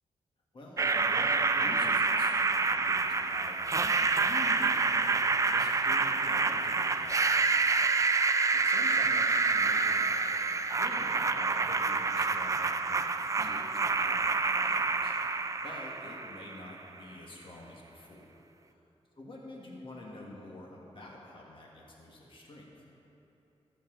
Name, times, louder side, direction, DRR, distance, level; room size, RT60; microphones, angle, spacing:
voice 1, 0.5-5.1 5.4-18.4 18.7-18.8 19.2-22.6, left 2 dB, 50° left, -2 dB, 1.7 m, -48 dB
sound 1, 0.8-16.7, right 4 dB, 30° right, 0.4 m, -28 dB
18.0 x 7.0 x 3.8 m, 3.0 s
wide cardioid pair, 130°, 11 cm